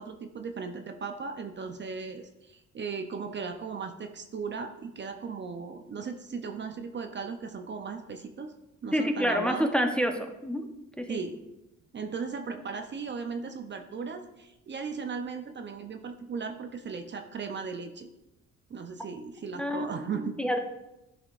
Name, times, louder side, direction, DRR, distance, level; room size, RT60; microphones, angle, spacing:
voice 1, 0.0-8.5 8.8-9.7 11.1-11.4 11.9-18.1 18.7-20.4, right 5 dB, 40° right, 6 dB, 0.6 m, -37 dB
voice 2, 8.9-10.1 10.4-10.6 11.0-11.2 19.6-20.6, equal, 5° left, 4 dB, 0.7 m, -28 dB
11.0 x 5.0 x 2.5 m, 0.93 s
cardioid pair, 90°, 30 cm